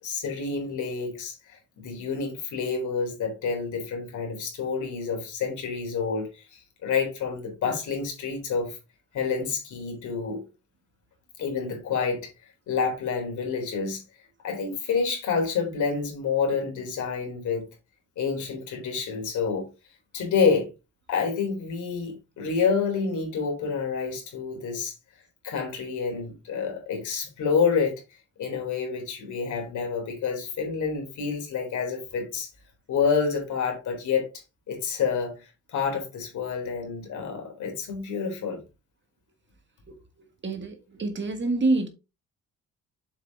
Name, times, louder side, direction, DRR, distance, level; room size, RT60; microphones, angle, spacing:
voice 1, 0.0-8.8 9.1-10.4 11.4-12.3 12.7-14.0 14.4-17.6 18.2-19.7 20.1-20.7 21.1-24.9 25.4-28.0 28.4-32.5 32.9-34.3 34.7-38.6, left 5 dB, 75° left, 3.8 m, -28 dB
voice 2, 40.4-41.9, right 2 dB, 40° right, 1.9 m, -26 dB
7.3 x 5.5 x 3.6 m
cardioid pair, 90°, 30 cm